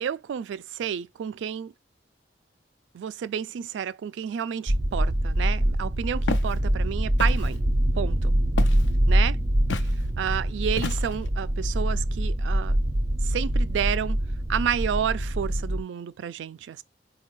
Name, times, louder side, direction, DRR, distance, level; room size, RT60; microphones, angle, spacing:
voice 1, 0.0-1.7 2.9-7.6 7.9-8.3 9.1-9.4 10.2-12.8 13.2-14.2 14.5-16.8, right 8 dB, 80° right, 0.3 m, -30 dB
sound 1, 4.7-15.8, right 1 dB, 25° right, 0.6 m, -24 dB
Walk footsteps, 6.3-6.5 7.2-7.6 8.6-8.9 9.7-9.9 10.8-11.3, left 4 dB, 80° left, 0.5 m, -31 dB
4.3 x 2.3 x 3.1 m
head